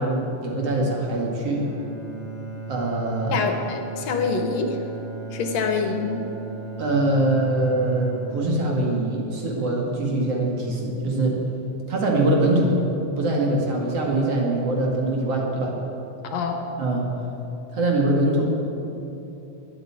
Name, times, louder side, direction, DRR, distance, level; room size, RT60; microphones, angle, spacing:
voice 1, 0.0-1.7 2.7-3.4 6.8-11.4 11.9-12.8 13.2-15.7 16.8-17.1 17.7-18.5, right 2 dB, 55° right, -2 dB, 3.0 m, -23 dB
Bowed string instrument, 1.6-9.8, right 3 dB, 25° right, 3.7 m, -37 dB
voice 2, 3.3-4.8 5.3-6.2 16.2-16.7, left 5 dB, 70° left, 5 dB, 2.2 m, -25 dB
12.5 x 9.3 x 8.8 m, 3.0 s
omnidirectional pair, 3.3 m